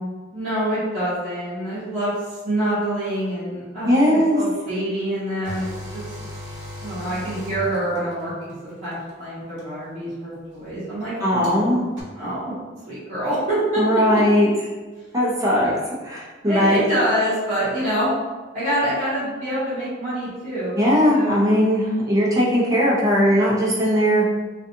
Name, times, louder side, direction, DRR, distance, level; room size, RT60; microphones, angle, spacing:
voice 1, 0.3-5.7 6.8-11.7 12.1-12.5 12.9-13.8 15.6-15.8 16.4-18.1 18.5-21.4, right 1 dB, 45° right, -14 dB, 1.0 m, -26 dB
voice 2, 3.8-4.4 11.2-11.8 13.8-14.5 15.1-15.7 16.0-16.8 20.8-24.3, equal, 20° right, -7 dB, 0.7 m, -18 dB
sound 1, 5.4-8.3 9.6-9.7 11.4-11.5 12.0-12.1, equal, 75° right, 0.9 m, -35 dB
2.5 x 2.3 x 2.7 m, 1.3 s
head